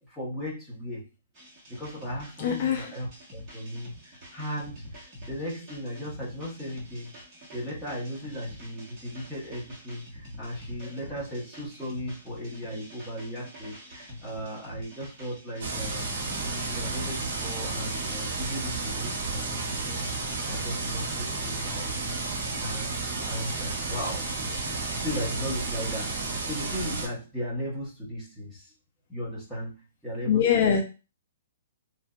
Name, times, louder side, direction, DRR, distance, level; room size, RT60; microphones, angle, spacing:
voice 1, 0.1-1.0 1.7-7.1 7.5-16.1 16.5-20.0 20.4-22.0 22.2-22.9 23.2-28.7 29.1-30.7, equal, ahead, 1.1 m, -37 dB
sound 1, 1.3-20.6, equal, 20° right, 1.4 m, -46 dB
voice 2, 2.4-2.9 30.3-30.8, left 8 dB, 40° left, 0.4 m, -23 dB
sound 2, 15.6-27.1, right 3 dB, 60° right, 1.1 m, -32 dB
3.2 x 2.6 x 2.4 m
hypercardioid pair, 170°, 0 cm